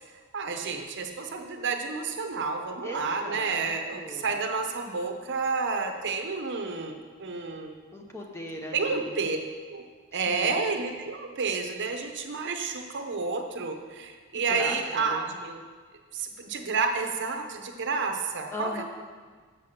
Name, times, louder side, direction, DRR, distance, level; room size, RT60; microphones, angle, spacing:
voice 1, 0.3-7.8 8.7-9.4 9.7-9.8 10.1-15.6 16.1-18.8, right 4 dB, 55° right, 5 dB, 0.8 m, -30 dB
voice 2, 2.8-4.3 7.9-9.2 10.1-10.6 14.5-15.2 18.5-18.8, left 1 dB, 10° left, 1 dB, 0.8 m, -39 dB
6.7 x 5.7 x 6.6 m, 1.5 s
head